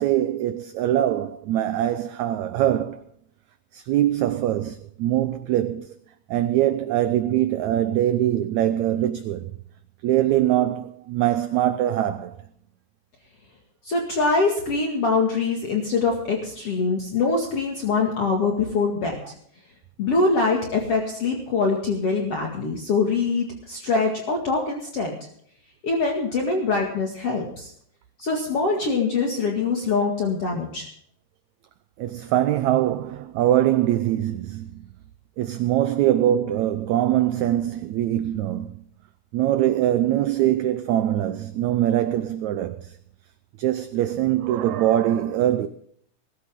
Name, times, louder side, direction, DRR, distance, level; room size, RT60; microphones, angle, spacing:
voice 1, 0.0-3.0 3.7-5.9 6.3-9.5 10.0-12.4 32.0-34.8 35.4-38.7 39.3-43.0 43.6-45.7, right 12 dB, 75° right, 1.8 m, -23 dB
voice 2, 13.8-19.3 20.0-25.2 25.8-27.7 28.2-30.9, left 4 dB, 45° left, 2.8 m, -24 dB
20.0 x 13.5 x 3.7 m
omnidirectional pair, 4.0 m